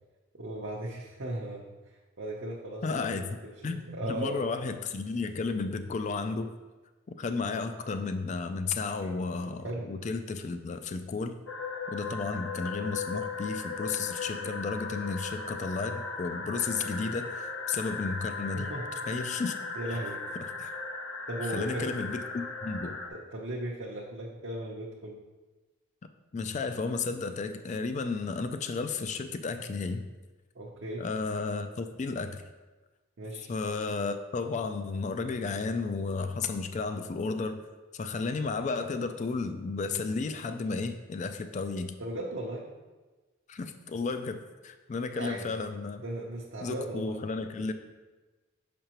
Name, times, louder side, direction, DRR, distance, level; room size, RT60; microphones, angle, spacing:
voice 1, 0.3-4.5 9.0-9.1 9.6-9.9 18.5-18.9 19.8-20.2 21.3-22.0 23.1-25.2 30.5-31.0 33.2-33.5 42.0-42.7 45.1-45.5 46.0-47.2, right 1 dB, 60° right, -4 dB, 0.7 m, -37 dB
voice 2, 2.8-3.3 3.6-6.5 7.1-11.4 11.9-18.7 19.1-19.6 19.9-20.1 20.6-20.8 21.5-23.0 26.3-30.1 31.0-32.4 33.5-37.7 37.9-42.0 43.5-46.0 46.6-47.7, left 4 dB, 35° left, 8 dB, 0.3 m, -33 dB
sound 1, 11.5-23.1, left 4 dB, 80° left, 0.8 m, -37 dB
6.5 x 5.1 x 3.0 m, 1.2 s
head